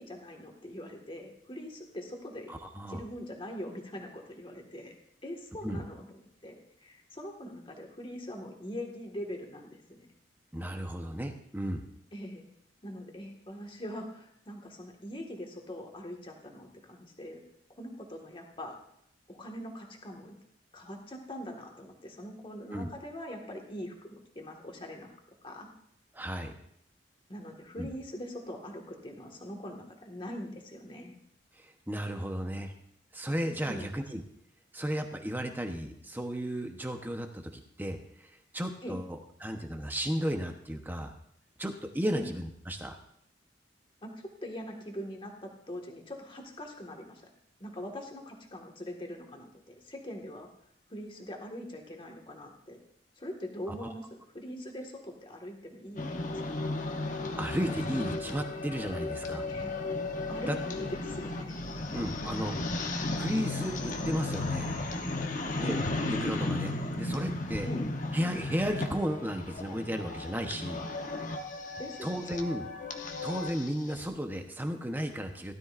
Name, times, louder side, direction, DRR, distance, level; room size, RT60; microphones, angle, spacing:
voice 1, 0.0-2.5 2.9-4.9 5.2-6.1 6.4-10.1 12.1-12.5 12.8-17.4 17.8-18.8 19.3-20.3 20.7-25.1 25.4-25.7 27.3-31.1 33.6-33.9 38.8-39.0 42.1-42.3 44.0-47.3 47.6-50.5 50.9-52.8 53.2-56.7 59.5-59.7 60.3-61.6 65.6-65.8 67.6-67.8 71.8-72.4, equal, 30° left, 2 dB, 1.7 m, -42 dB
voice 2, 2.5-3.0 5.6-5.8 10.5-11.9 22.7-22.9 26.1-26.5 27.8-27.9 31.6-32.7 33.1-34.2 34.7-37.5 37.8-39.1 39.4-41.1 41.6-43.0 53.7-53.9 57.4-59.4 60.5-60.6 61.9-62.6 63.2-64.7 65.5-65.8 66.1-67.7 68.1-70.8 72.0-72.7 73.2-75.5, equal, 10° right, 5 dB, 1.0 m, -34 dB
sound 1, 56.0-74.1, left 2 dB, 45° left, 1.0 m, -35 dB
16.5 x 12.5 x 2.6 m, 0.71 s
head